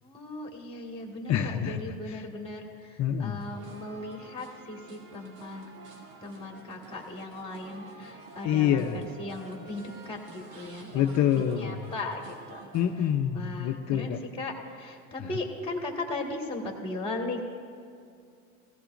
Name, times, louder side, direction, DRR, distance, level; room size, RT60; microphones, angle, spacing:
voice 1, 0.0-5.7 6.2-8.8 9.2-11.2 11.6-12.6 13.3-14.5 14.8-17.4, left 2 dB, 15° left, 0 dB, 2.0 m, -37 dB
voice 2, 1.3-2.3 3.0-3.4 8.4-9.1 10.9-11.9 12.7-14.2 15.2-15.3, left 9 dB, 45° left, 5 dB, 0.7 m, -27 dB
sound 1, 3.4-13.1, right 2 dB, 80° right, 2.0 m, -49 dB
16.0 x 15.5 x 2.6 m, 2.4 s
supercardioid pair, 105°, 40 cm